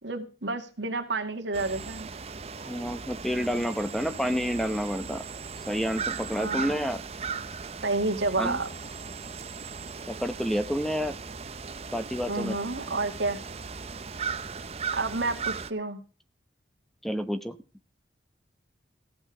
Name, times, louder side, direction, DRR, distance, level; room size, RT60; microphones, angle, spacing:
voice 1, 0.0-2.1 6.3-6.8 7.8-8.7 12.3-13.4 14.9-16.0, right 3 dB, 80° right, 4 dB, 2.2 m, -30 dB
sound 1, 1.5-15.7, right 5 dB, 35° right, 0.7 m, -37 dB
voice 2, 2.7-5.2 5.7-7.0 8.4-8.6 10.1-11.2 11.9-12.6 17.0-17.6, equal, ahead, 10 dB, 0.8 m, -29 dB
15.0 x 7.9 x 5.0 m, 0.35 s
head